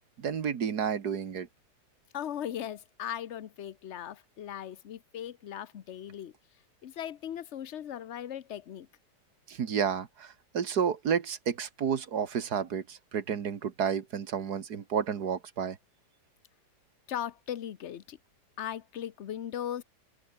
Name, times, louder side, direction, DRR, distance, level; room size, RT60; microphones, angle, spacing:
voice 1, 0.2-1.5 9.5-15.8, right 7 dB, 65° right, 2.1 m, -31 dB
voice 2, 2.1-6.3 6.8-8.9 17.1-18.2 18.6-19.8, left 10 dB, 50° left, 1.0 m, -38 dB
open air
omnidirectional pair, 1.8 m